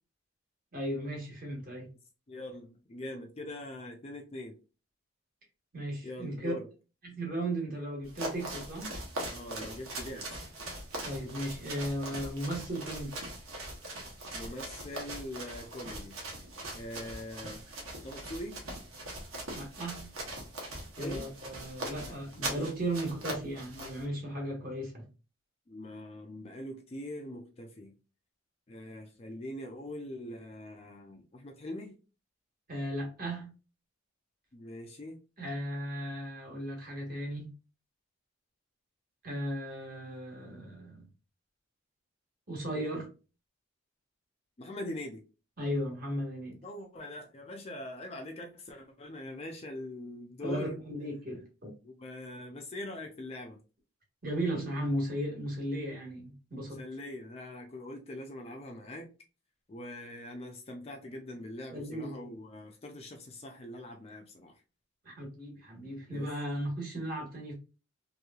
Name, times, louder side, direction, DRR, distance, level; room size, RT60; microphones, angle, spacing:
voice 1, 0.7-1.9 5.7-6.5 7.0-8.9 11.0-13.2 19.5-20.1 21.0-25.1 32.7-33.5 35.4-37.5 39.2-41.1 42.5-43.1 45.6-46.6 50.4-51.7 54.2-56.8 61.7-62.2 65.0-67.5, right 1 dB, 40° right, 1.3 m, -36 dB
voice 2, 2.3-4.5 6.0-6.7 9.3-10.4 14.3-16.2 16.7-17.6 18.0-18.6 21.0-21.3 22.0-22.5 25.7-27.9 28.7-32.0 34.5-35.2 42.7-43.0 44.6-45.2 46.6-50.8 51.8-53.6 56.5-59.1 59.7-64.5 66.1-66.3, left 1 dB, 30° left, 0.4 m, -43 dB
sound 1, 8.0-24.0, right 1 dB, 75° right, 1.0 m, -41 dB
3.0 x 2.7 x 2.3 m
head